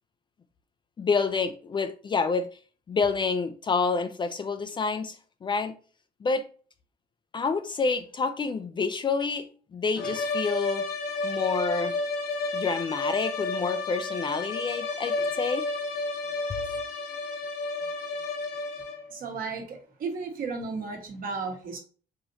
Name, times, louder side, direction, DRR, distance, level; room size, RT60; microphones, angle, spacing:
voice 1, 1.0-2.5 2.9-5.8 6.2-6.5 7.3-10.8 11.2-12.0 12.5-15.7, left 4 dB, 30° left, 0.4 m, -28 dB
sound 1, 9.9-19.1, left 3 dB, 65° left, 1.2 m, -31 dB
voice 2, 19.1-21.8, right 4 dB, 55° right, 1.4 m, -34 dB
4.9 x 2.8 x 2.7 m
cardioid pair, 110°, 17 cm